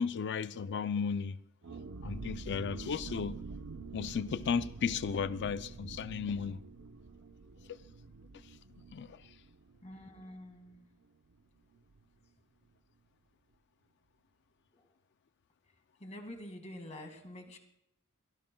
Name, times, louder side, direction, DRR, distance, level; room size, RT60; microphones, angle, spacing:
voice 1, 0.0-1.4 2.0-3.4 3.9-6.6 7.7-7.8 8.3-8.6 8.9-9.4, left 6 dB, 50° left, 0.4 m, -35 dB
sound 1, 1.6-11.0 11.3-11.4 11.7-12.0, right 4 dB, 85° right, 0.8 m, -47 dB
voice 2, 9.8-10.9 14.7-14.9 16.0-17.6, left 1 dB, 30° left, 2.0 m, -47 dB
22.5 x 15.5 x 2.3 m
head